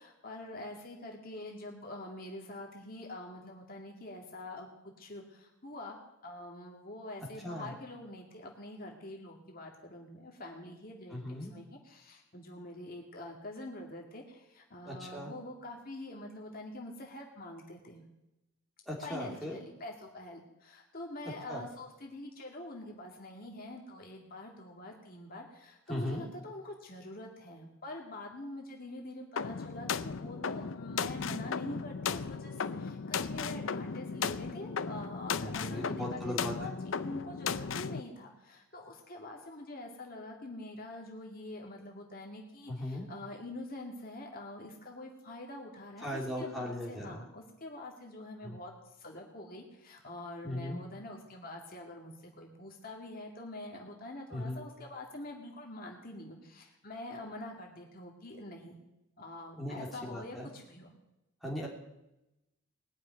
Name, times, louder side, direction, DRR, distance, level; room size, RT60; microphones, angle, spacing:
voice 1, 0.0-4.7 5.0-6.0 6.2-18.0 19.0-48.7 49.0-58.8 59.2-60.9, left 1 dB, 40° left, 0 dB, 2.2 m, -45 dB
voice 2, 11.1-11.5 14.8-15.3 18.9-19.5 21.5-21.6 25.9-26.3 35.3-36.8 42.7-43.1 46.0-47.2 48.4-48.6 50.4-50.8 54.3-54.6 59.6-60.5 61.4-61.7, left 1 dB, ahead, -4 dB, 2.9 m, -38 dB
sound 1, 29.4-38.0, left 5 dB, 60° left, 0.6 m, -36 dB
20.0 x 6.8 x 9.4 m, 0.93 s
head